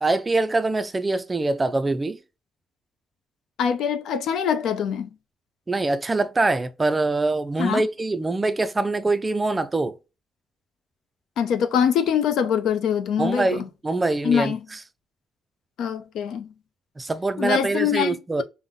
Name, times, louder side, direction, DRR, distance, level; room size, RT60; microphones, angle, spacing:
voice 1, 0.0-2.2 5.7-10.0 13.2-14.8 17.0-18.4, right 2 dB, 15° right, 0.3 m, -24 dB
voice 2, 3.6-5.1 7.6-7.8 11.4-13.6 14.2-14.6 15.8-16.5 17.4-18.4, left 8 dB, 80° left, 0.6 m, -23 dB
5.4 x 2.1 x 3.6 m
cardioid pair, 165°, 0 cm